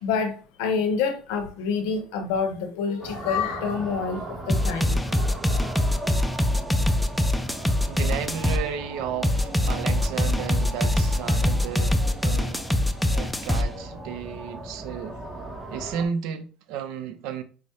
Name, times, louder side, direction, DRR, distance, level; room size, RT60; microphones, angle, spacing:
voice 1, 0.0-4.2 4.5-4.9, left 5 dB, 85° left, 0.7 m, -27 dB
sound 1, 3.0-16.1, right 1 dB, 20° right, 0.8 m, -38 dB
sound 2, 4.5-8.6 9.2-13.6, left 1 dB, 5° left, 0.3 m, -23 dB
voice 2, 7.9-12.7 13.1-15.2 15.7-17.4, right 7 dB, 75° right, 0.5 m, -33 dB
4.6 x 2.0 x 2.7 m
cardioid pair, 120°, 0 cm